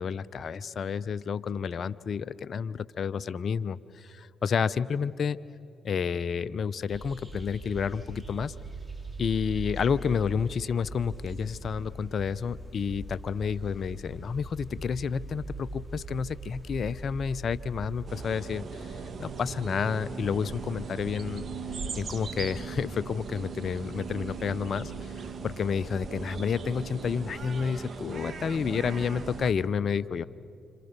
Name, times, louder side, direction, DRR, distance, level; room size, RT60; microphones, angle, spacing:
voice 1, 0.0-5.4 5.8-8.5 9.2-21.4 22.0-25.1 25.4-30.2, left 6 dB, 55° left, 17 dB, 0.7 m, -30 dB
sound 1, 6.9-18.2, right 1 dB, 15° right, 3.5 m, -41 dB
sound 2, 18.1-29.5, right 5 dB, 50° right, 2.1 m, -38 dB
29.0 x 27.5 x 6.8 m, 2.8 s
hypercardioid pair, 45°, 0 cm